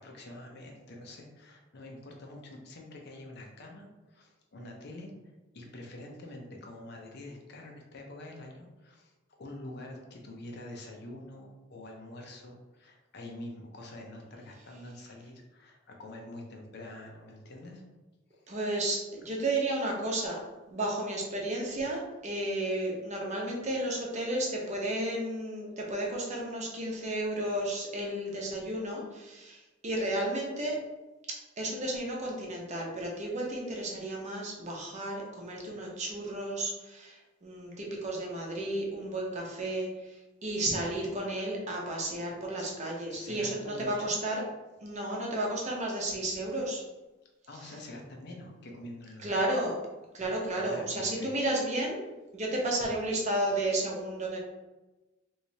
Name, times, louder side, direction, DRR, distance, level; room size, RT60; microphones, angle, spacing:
voice 1, 0.0-5.1 5.5-9.1 9.4-17.8 18.3-18.5 42.6-42.8 43.1-44.2 47.5-49.4 50.5-51.3, left 1 dB, 60° left, 1 dB, 0.6 m, -46 dB
voice 2, 18.5-20.4 20.7-30.8 31.3-40.2 40.4-44.4 44.8-46.8 49.2-49.7 50.1-52.0 52.3-54.4, right 1 dB, 40° right, -2 dB, 0.8 m, -32 dB
3.2 x 3.1 x 2.7 m, 1.1 s
head